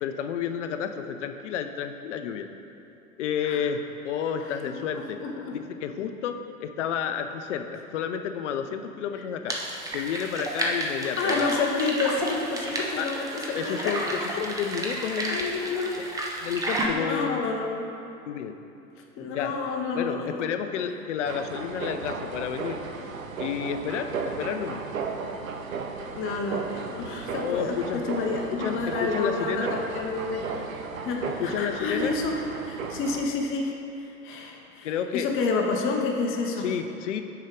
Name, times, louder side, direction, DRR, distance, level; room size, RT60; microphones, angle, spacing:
voice 1, 0.0-2.5 3.2-5.2 5.5-9.6 9.9-11.6 13.0-13.1 13.5-15.4 16.0-16.1 16.4-17.4 18.3-18.5 19.3-19.5 19.9-22.8 23.4-24.1 24.4-24.8 27.3-28.0 28.5-29.7 31.3-32.2 34.8-35.3 36.6-37.2, left 8 dB, 60° left, 8 dB, 0.6 m, -31 dB
voice 2, 4.6-5.6 11.2-14.0 14.3-14.5 15.3-15.9 16.9-17.9 19.2-20.4 26.2-30.6 31.0-33.8 34.2-34.9 35.1-36.7, left 4 dB, 30° left, 2 dB, 0.8 m, -29 dB
sound 1, 9.5-16.9, right 1 dB, 10° right, 0.6 m, -31 dB
sound 2, 21.2-33.3, right 5 dB, 75° right, 0.7 m, -35 dB
6.3 x 4.7 x 5.2 m, 2.8 s
figure-of-eight pair, 95°, 41 cm